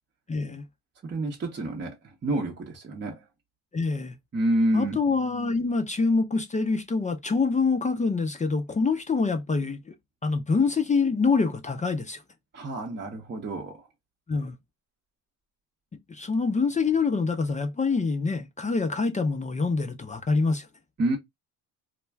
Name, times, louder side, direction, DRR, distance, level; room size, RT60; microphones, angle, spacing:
voice 1, 0.3-0.6 3.7-4.1 4.7-9.9 10.2-12.2 14.3-14.6 16.1-20.7, left 4 dB, 20° left, 0.4 m, -25 dB
voice 2, 1.0-3.2 4.3-5.0 12.5-13.9 21.0-21.2, right 1 dB, 30° right, 0.7 m, -28 dB
2.3 x 2.1 x 3.3 m
supercardioid pair, 80°, 39 cm